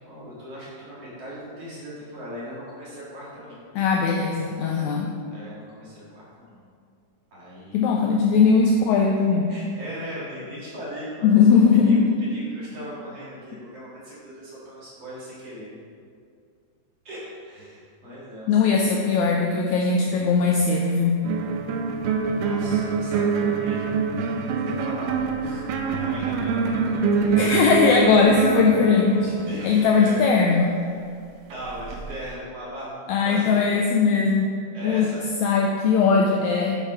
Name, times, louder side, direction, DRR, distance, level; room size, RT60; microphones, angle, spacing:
voice 1, 0.0-3.6 5.3-6.6 7.3-8.3 9.5-12.0 12.3-15.7 17.0-19.0 22.4-24.0 24.7-26.7 27.2-27.3 29.5-30.2 31.5-32.9 33.2-33.6 34.7-35.2, equal, 50° right, -8 dB, 2.9 m, -38 dB
voice 2, 3.7-5.1 7.7-9.5 11.2-12.2 18.5-21.2 27.4-29.3 29.6-30.7 33.1-34.5 34.8-35.1 35.4-36.8, left 5 dB, 85° left, 1 dB, 1.6 m, -19 dB
sound 1, 21.2-30.2 31.5-32.3, right 5 dB, 85° right, 2.2 m, -25 dB
7.3 x 5.3 x 4.9 m, 2.3 s
omnidirectional pair, 3.9 m